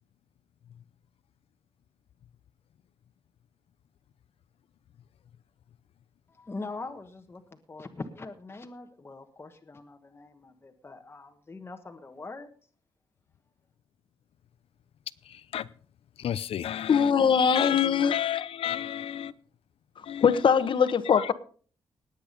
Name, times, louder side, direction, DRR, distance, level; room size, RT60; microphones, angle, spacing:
voice 1, 6.3-7.4 7.7-12.5, left 3 dB, 25° left, 1.3 m, -42 dB
voice 2, 15.2-15.7 16.2-17.1 17.5-19.3 20.0-20.4 21.2-21.3, left 10 dB, 75° left, 0.7 m, -32 dB
voice 3, 16.9-18.4 20.2-21.3, left 7 dB, 55° left, 1.2 m, -22 dB
19.0 x 8.2 x 5.3 m
cardioid pair, 120°, 10 cm